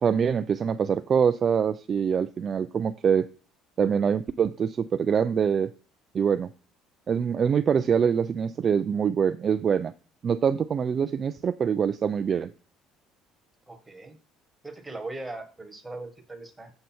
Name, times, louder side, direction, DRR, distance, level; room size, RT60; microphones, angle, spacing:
voice 1, 0.0-3.3 3.8-5.7 6.1-6.5 7.1-9.9 10.2-12.5, right 7 dB, 30° right, 11 dB, 0.3 m, -24 dB
voice 2, 13.7-14.2 14.6-16.7, right 2 dB, 5° right, 5 dB, 1.3 m, -39 dB
7.6 x 6.7 x 4.3 m, 0.37 s
cardioid pair, 150°, 0 cm